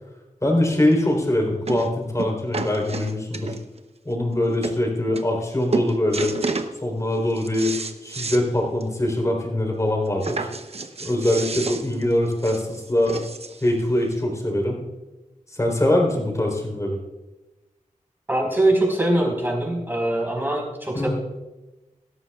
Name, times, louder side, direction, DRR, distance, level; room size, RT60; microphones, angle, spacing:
voice 1, 0.4-3.6 4.0-6.4 6.8-7.8 8.0-10.5 11.0-13.2 13.6-14.8 15.5-17.0 20.9-21.1, left 1 dB, 25° left, 0 dB, 3.8 m, -23 dB
sound 1, 0.9-1.0 1.7-1.9 2.2-3.8 4.3-4.4 4.6-4.8 5.2-5.5 5.7-6.7 7.1-8.4 8.8-8.9 9.2-9.3 10.2-13.7 14.5-14.6, right 3 dB, 50° right, 0.9 m, -30 dB
voice 2, 18.3-21.1, right 1 dB, 15° right, -1 dB, 4.7 m, -22 dB
17.5 x 12.5 x 2.4 m, 1.1 s
wide cardioid pair, 80°, 14 cm